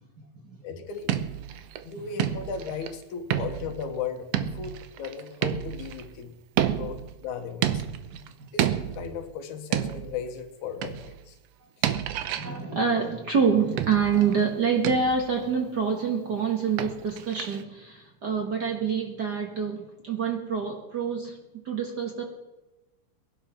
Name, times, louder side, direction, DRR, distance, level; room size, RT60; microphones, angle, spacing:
voice 1, 0.6-1.1 1.8-6.4 6.7-7.8 8.5-8.7 8.9-11.4 11.8-11.9, left 6 dB, 80° left, 6 dB, 2.7 m, -36 dB
sound 1, 0.9-1.8 2.2-3.0 3.3-3.9 4.3-6.1 6.6-7.2 7.6-8.3 8.6-9.2 9.7-10.3 10.8-11.2 11.8-12.6 13.8-14.4 14.8-15.3 16.8-17.6, right 11 dB, 70° right, 1.7 m, -29 dB
voice 2, 12.3-22.2, right 6 dB, 40° right, 2 dB, 1.7 m, -26 dB
19.5 x 11.5 x 5.7 m, 1.0 s
omnidirectional pair, 3.4 m